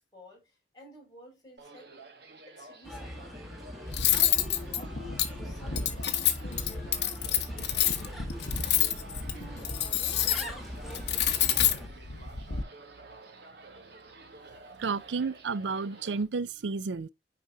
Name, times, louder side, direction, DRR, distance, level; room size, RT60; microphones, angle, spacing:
voice 1, 0.0-1.9 2.4-3.4 4.1-8.8 9.3-11.7, left 1 dB, 20° left, 5.4 m, -52 dB
sound 1, 1.6-16.2, right 3 dB, 65° right, 1.6 m, -50 dB
Bird, 2.8-11.9, equal, ahead, 1.5 m, -42 dB
Cutlery silverware, 3.9-12.6, left 10 dB, 65° left, 1.1 m, -28 dB
voice 2, 14.8-17.1, right 4 dB, 85° right, 0.5 m, -31 dB
9.3 x 5.1 x 2.7 m
head